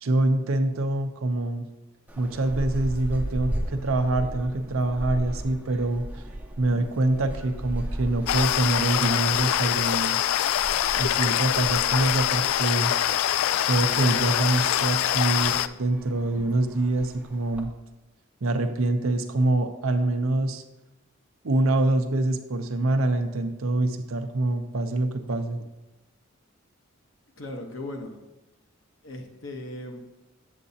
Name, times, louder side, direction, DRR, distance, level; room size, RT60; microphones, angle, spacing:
voice 1, 0.0-1.6 2.2-6.0 6.6-10.2 10.9-12.9 13.7-17.7 18.4-20.6 21.4-25.6, right 2 dB, 80° right, 7 dB, 0.7 m, -25 dB
sound 1, 2.1-17.6, right 1 dB, 5° right, 0.5 m, -37 dB
sound 2, 8.3-15.7, left 11 dB, 90° left, 0.3 m, -24 dB
voice 2, 27.4-28.2 29.0-30.0, left 1 dB, 65° left, 4 dB, 1.0 m, -37 dB
8.3 x 7.4 x 2.7 m, 1.0 s
head